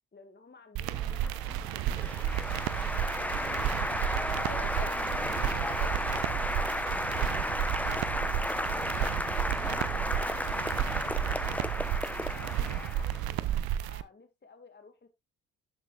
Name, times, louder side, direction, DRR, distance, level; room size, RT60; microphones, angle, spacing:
voice 1, 0.1-4.5 4.8-6.6 7.2-7.4 9.6-11.8 12.2-13.5 13.8-15.1, left 4 dB, 25° left, 2.0 m, -53 dB
sound 1, 0.8-14.0, right 11 dB, 60° right, 0.8 m, -32 dB
Applause, 0.9-13.4, left 1 dB, 5° left, 1.0 m, -33 dB
voice 2, 4.3-5.0 5.2-6.0 7.7-8.8, left 3 dB, 75° left, 3.4 m, -48 dB
11.5 x 7.6 x 2.5 m
hypercardioid pair, 45°, 41 cm